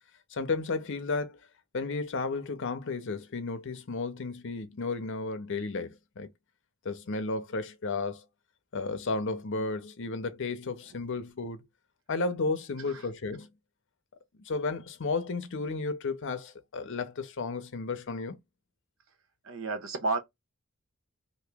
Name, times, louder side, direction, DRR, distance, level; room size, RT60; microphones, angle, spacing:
voice 1, 0.3-1.4 1.7-6.3 6.8-8.3 8.7-11.6 12.1-13.5 14.4-18.4, left 3 dB, 60° left, 0.6 m, -33 dB
voice 2, 19.4-20.2, right 3 dB, 65° right, 0.9 m, -30 dB
2.9 x 2.7 x 3.3 m
head